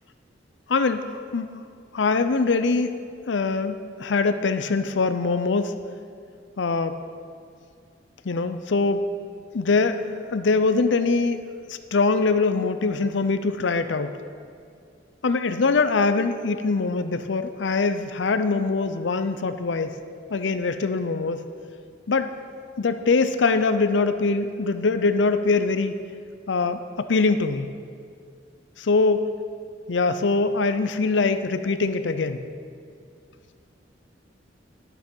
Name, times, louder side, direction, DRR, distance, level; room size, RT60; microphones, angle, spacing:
voice 1, 0.7-1.5 1.9-5.8 6.6-7.0 8.2-9.0 9.5-11.4 11.7-14.1 15.2-20.0 20.3-21.4 22.1-22.3 22.8-25.9 26.5-27.7 28.9-29.2 29.9-32.4, left 4 dB, 85° left, 10 dB, 0.6 m, -23 dB
11.0 x 8.9 x 5.4 m, 2.3 s
head